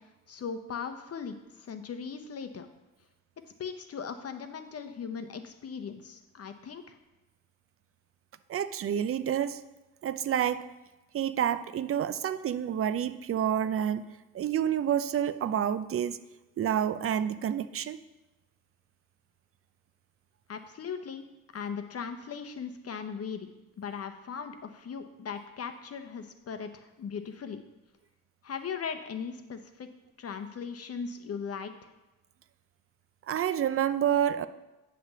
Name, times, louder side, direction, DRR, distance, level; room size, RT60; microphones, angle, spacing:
voice 1, 0.3-2.7 3.6-7.0 20.5-21.2 21.5-23.5 23.8-27.6 28.4-29.9 30.2-31.9, left 6 dB, 45° left, 8 dB, 0.8 m, -38 dB
voice 2, 8.5-9.6 10.0-10.6 11.1-14.0 14.3-16.2 16.6-18.0 33.3-34.5, right 9 dB, 40° right, 13 dB, 0.5 m, -28 dB
9.4 x 3.4 x 6.7 m, 1.1 s
cardioid pair, 85°, 34 cm